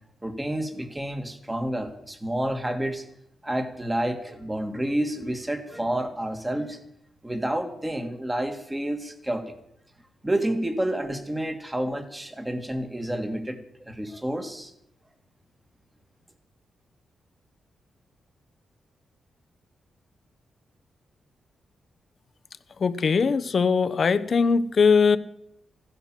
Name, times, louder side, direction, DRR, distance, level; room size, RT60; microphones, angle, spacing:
voice 1, 0.2-3.1 3.4-6.8 7.2-9.5 10.2-13.6 13.9-14.7, right 1 dB, 15° right, 7 dB, 2.3 m, -29 dB
voice 2, 22.8-25.2, left 5 dB, 50° left, 12 dB, 1.0 m, -20 dB
15.5 x 11.0 x 7.6 m, 0.76 s
cardioid pair, 85°, 0 cm